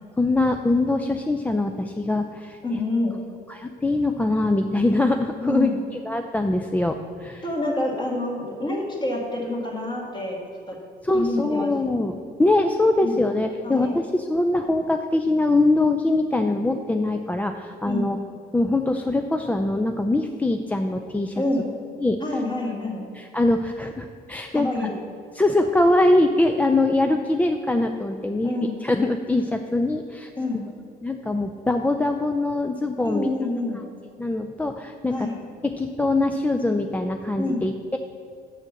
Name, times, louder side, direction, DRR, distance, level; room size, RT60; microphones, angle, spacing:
voice 1, 0.2-2.6 3.5-5.7 6.0-7.4 11.0-18.2 18.5-21.4 22.0-22.2 23.1-24.9 25.3-30.3 31.0-33.3 34.2-35.1 35.6-38.0, left 2 dB, 10° left, 5 dB, 0.4 m, -23 dB
voice 2, 2.6-3.2 5.4-5.8 7.4-10.4 10.7-10.8 11.1-11.7 13.0-13.3 13.6-13.9 17.8-18.1 21.3-21.7 22.2-23.0 24.5-24.9 28.4-28.8 30.4-30.7 33.0-33.9 35.1-35.4 37.4-37.6, left 2 dB, 25° left, -1 dB, 2.0 m, -27 dB
6.4 x 6.4 x 7.4 m, 2.5 s
cardioid pair, 110°, 17 cm